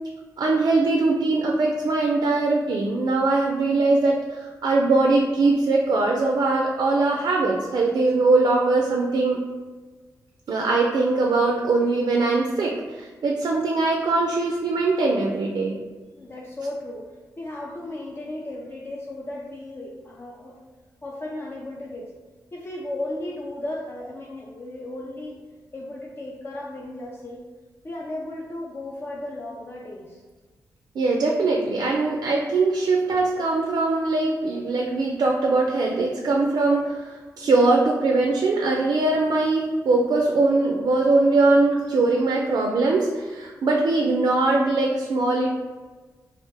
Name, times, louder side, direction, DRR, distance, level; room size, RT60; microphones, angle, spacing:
voice 1, 0.4-9.4 10.5-15.8 31.0-45.5, right 3 dB, 65° right, 0 dB, 0.3 m, -21 dB
voice 2, 16.2-17.1 17.4-20.6 21.0-22.1 22.5-25.4 25.7-27.4 27.8-30.2, left 1 dB, 30° left, -3 dB, 0.4 m, -35 dB
2.4 x 2.0 x 3.3 m, 1.3 s
cardioid pair, 60°, 7 cm